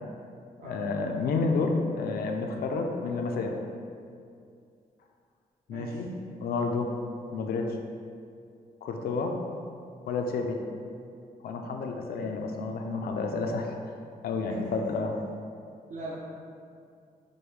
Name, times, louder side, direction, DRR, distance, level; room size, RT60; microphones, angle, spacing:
voice 1, 0.6-3.6 5.7-6.1 6.4-7.0 7.3-7.8 8.8-9.4 10.1-10.6 11.4-13.8 14.2-15.1, left 3 dB, 70° left, 3 dB, 0.4 m, -30 dB
voice 2, 5.7-6.0 15.9-16.2, right 2 dB, 50° right, -7 dB, 0.6 m, -40 dB
4.9 x 2.2 x 3.2 m, 2.3 s
cardioid pair, 85°, 16 cm